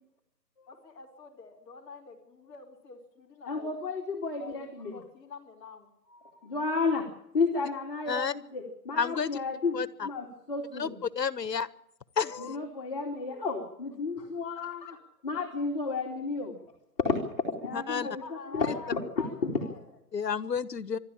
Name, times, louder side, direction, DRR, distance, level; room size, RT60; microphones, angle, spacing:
voice 1, 0.7-3.8 4.3-5.9 13.1-13.4 14.5-14.9 18.0-19.8, left 5 dB, 10° left, -4 dB, 3.3 m, -47 dB
voice 2, 3.5-4.9 6.1-7.1 7.3-11.0 12.4-14.9 15.2-16.5 17.0-18.2 18.5-19.0 19.4-19.5, left 4 dB, 35° left, -2 dB, 2.9 m, -32 dB
voice 3, 9.0-9.3 9.7-10.1 10.8-10.9 11.2-11.7 12.2-12.6 17.7-18.1 20.1-21.0, left 6 dB, 80° left, 17 dB, 1.4 m, -30 dB
26.0 x 12.5 x 8.8 m, 0.77 s
hypercardioid pair, 165°, 49 cm